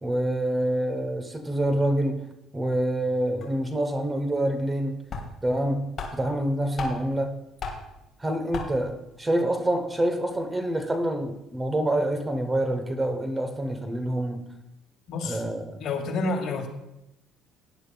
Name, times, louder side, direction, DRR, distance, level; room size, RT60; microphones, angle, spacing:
voice 1, 0.0-2.3 2.5-5.0 5.4-7.4 8.2-14.4 15.2-15.8, right 1 dB, 15° right, 7 dB, 0.8 m, -27 dB
sound 1, 3.1-3.2 3.4-3.6 4.7-4.8 5.1-5.6 6.0-7.2 7.6-8.0 8.5-9.0, left 3 dB, 40° left, 2.5 m, -34 dB
voice 2, 15.1-15.4 15.8-16.7, left 3 dB, 60° left, 3 dB, 2.0 m, -28 dB
17.5 x 10.0 x 2.3 m, 0.91 s
cardioid pair, 140°, 0 cm